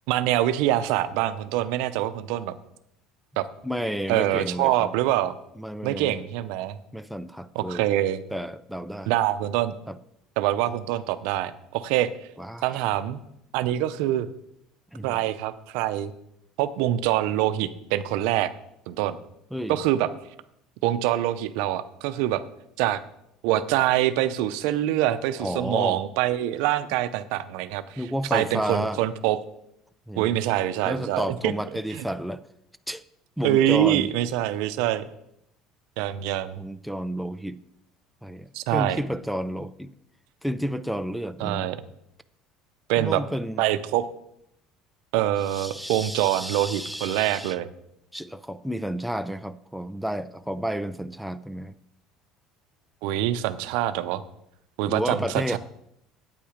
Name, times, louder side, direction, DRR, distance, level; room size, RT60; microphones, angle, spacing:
voice 1, 0.1-2.5 3.4-3.5 4.1-5.3 5.8-6.8 7.5-8.2 9.1-9.7 10.4-12.1 12.6-13.2 13.5-14.3 15.0-16.1 16.6-18.5 18.9-19.2 19.7-20.1 20.8-22.4 22.8-23.0 23.4-28.0 28.3-29.4 30.2-31.5 31.9-32.0 33.4-35.0 36.0-36.6 38.5-39.0 41.4-41.8 42.9-43.2 43.6-44.1 45.1-47.7 53.0-54.2 54.8-55.6, right 13 dB, 80° right, 12 dB, 0.6 m, -25 dB
voice 2, 3.6-4.9 5.6-6.2 6.9-7.9 8.3-9.1 9.9-10.0 12.4-12.8 14.9-15.2 19.5-19.8 25.4-26.0 28.0-29.0 30.1-30.4 30.8-32.4 32.9-33.0 33.4-34.1 36.6-37.6 38.2-39.9 40.4-41.7 43.0-43.7 45.5-47.6 48.1-51.7 54.9-55.6, equal, ahead, 11 dB, 0.4 m, -31 dB
8.8 x 8.6 x 5.1 m, 0.78 s
cardioid pair, 120°, 0 cm